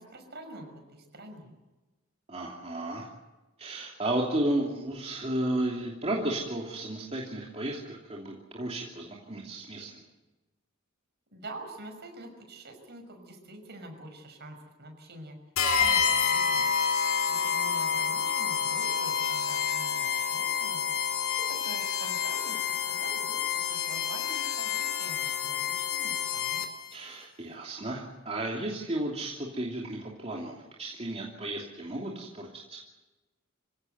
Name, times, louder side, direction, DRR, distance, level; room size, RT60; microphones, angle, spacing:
voice 1, 0.0-1.5 11.3-15.3 15.8-16.7 17.3-26.6, right 1 dB, 50° right, 5 dB, 5.9 m, -46 dB
voice 2, 2.3-3.1 3.6-10.0 26.9-32.8, right 1 dB, 30° right, -2 dB, 3.0 m, -33 dB
sound 1, 15.6-26.9, left 7 dB, 75° left, 2.6 m, -28 dB
27.0 x 17.0 x 8.1 m, 1.1 s
head